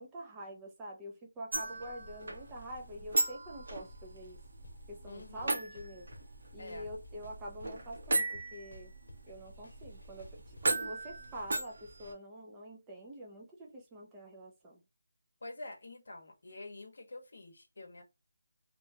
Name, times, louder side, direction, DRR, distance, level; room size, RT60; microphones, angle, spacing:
voice 1, 0.0-4.4 4.9-6.1 6.5-8.9 9.3-14.8, right 1 dB, 5° right, 0.4 m, -46 dB
sound 1, 1.5-12.1, right 2 dB, 45° right, 0.8 m, -37 dB
sound 2, 4.6-4.7 5.2-6.2 6.7-7.8 8.1-10.7, equal, 90° left, 0.9 m, -52 dB
voice 2, 5.1-5.6 6.6-6.9 15.4-18.0, left 2 dB, 50° left, 0.9 m, -47 dB
2.8 x 2.2 x 2.6 m
figure-of-eight pair, 180°, 0 cm